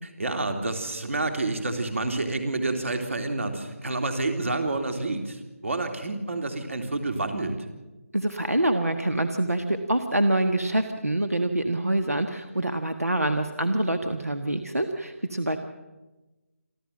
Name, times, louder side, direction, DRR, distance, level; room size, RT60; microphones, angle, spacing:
voice 1, 0.0-7.6, right 2 dB, 60° right, 5 dB, 3.3 m, -29 dB
voice 2, 8.1-15.6, right 1 dB, 90° right, 7 dB, 1.5 m, -25 dB
27.5 x 12.5 x 7.6 m, 1.1 s
figure-of-eight pair, 155°, 8 cm